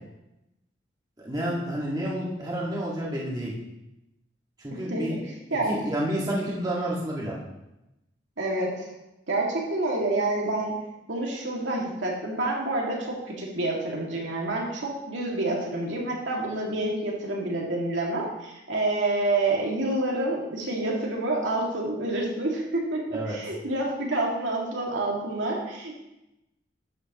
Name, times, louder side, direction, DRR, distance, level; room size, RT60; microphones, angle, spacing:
voice 1, 1.2-3.5 4.6-5.2 5.7-7.4 23.1-23.4, right 1 dB, 20° right, -5 dB, 1.9 m, -29 dB
voice 2, 4.9-5.8 8.4-8.9 9.3-10.7 11.1-26.0, right 2 dB, 75° right, -3 dB, 2.2 m, -28 dB
12.0 x 8.2 x 3.0 m, 0.92 s
head